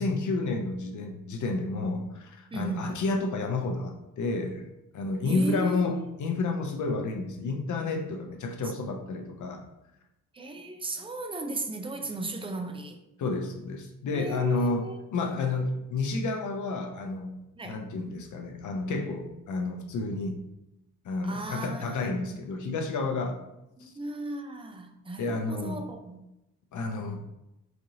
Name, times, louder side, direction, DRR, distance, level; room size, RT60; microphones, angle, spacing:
voice 1, 0.0-4.6 4.9-9.7 13.2-14.8 15.1-17.4 17.6-20.4 21.0-23.4 23.8-23.9 25.2-25.9 26.7-27.2, left 3 dB, 40° left, 4 dB, 0.7 m, -30 dB
voice 2, 2.5-3.0 5.2-6.0 10.3-13.0 14.1-15.0 17.6-17.8 21.2-22.3 23.8-26.3, right 2 dB, 15° right, 4 dB, 0.4 m, -36 dB
4.1 x 2.7 x 2.7 m, 0.91 s
figure-of-eight pair, 45°, 45 cm